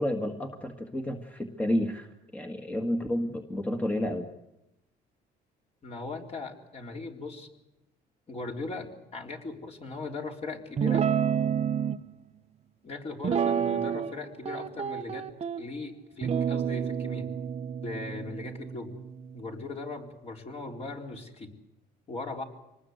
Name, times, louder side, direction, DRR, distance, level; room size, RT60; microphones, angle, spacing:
voice 1, 0.0-2.1 2.3-4.3, left 1 dB, 10° left, 4 dB, 1.7 m, -30 dB
voice 2, 5.8-7.5 8.3-11.1 12.8-15.3 15.6-17.3 17.8-19.0 19.3-21.5 22.1-22.4, left 3 dB, 40° left, 2 dB, 4.1 m, -39 dB
Guitar, 10.8-12.0 13.2-14.2 14.5-15.6 16.2-19.7, right 8 dB, 40° right, 0.9 m, -29 dB
25.5 x 20.0 x 8.1 m, 0.92 s
cardioid pair, 110°, 17 cm